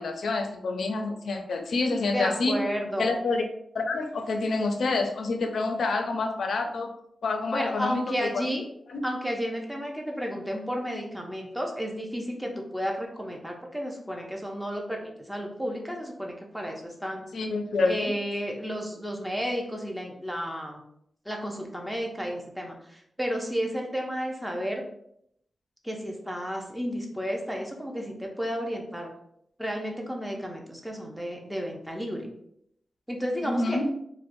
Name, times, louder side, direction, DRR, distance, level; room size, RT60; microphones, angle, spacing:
voice 1, 0.0-2.6 3.0-3.5 3.7-6.9 7.2-8.3 8.9-9.0 17.3-18.1 33.4-33.9, left 3 dB, 70° left, 5 dB, 0.4 m, -27 dB
voice 2, 2.1-3.2 7.5-8.6 9.0-17.3 17.9-20.8 21.3-24.8 25.8-29.1 29.6-32.3 33.1-33.8, equal, ahead, 1 dB, 0.5 m, -32 dB
4.2 x 2.0 x 2.5 m, 0.74 s
wide cardioid pair, 175°, 0 cm